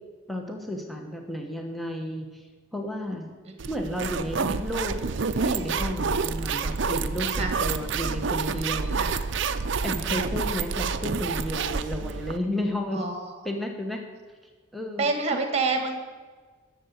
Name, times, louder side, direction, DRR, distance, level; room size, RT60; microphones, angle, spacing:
voice 1, 0.3-2.4 2.7-3.3 3.7-5.0 5.4-8.9 9.8-13.1 13.4-14.0 14.7-15.1, left 1 dB, ahead, 2 dB, 1.2 m, -32 dB
sound 1, 3.6-12.4, right 5 dB, 60° right, 0.6 m, -28 dB
voice 2, 12.9-13.3 15.0-16.0, right 3 dB, 30° right, 5 dB, 1.8 m, -27 dB
12.0 x 7.1 x 8.2 m, 1.4 s
head